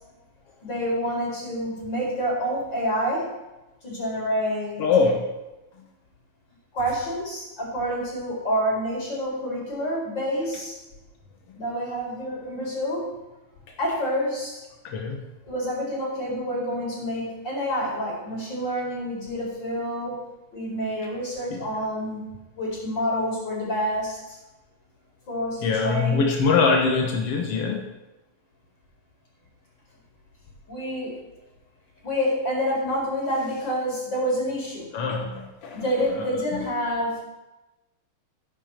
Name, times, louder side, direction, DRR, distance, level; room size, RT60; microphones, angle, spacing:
voice 1, 0.6-3.3 3.8-4.9 6.7-10.8 11.6-13.1 13.8-14.6 15.5-20.2 20.5-22.2 22.5-24.4 25.3-26.3 30.7-31.2 32.0-34.9 35.7-37.2, equal, 30° left, -3 dB, 5.4 m, -28 dB
voice 2, 4.8-5.2 14.8-15.2 21.5-21.7 25.6-27.8 34.9-35.8, left 4 dB, 65° left, 2 dB, 1.5 m, -23 dB
14.5 x 11.0 x 4.5 m, 1.0 s
omnidirectional pair, 4.3 m